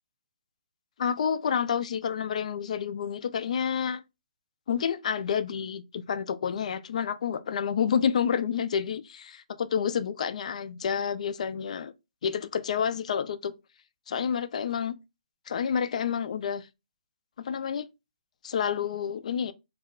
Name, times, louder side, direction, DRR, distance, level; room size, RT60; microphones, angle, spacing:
voice 1, 1.0-4.0 4.7-11.9 12.2-13.5 14.1-14.9 15.5-16.7 17.4-17.9 18.4-19.5, left 7 dB, 60° left, 0.3 m, -29 dB
2.4 x 2.1 x 3.5 m
hypercardioid pair, 155°, 4 cm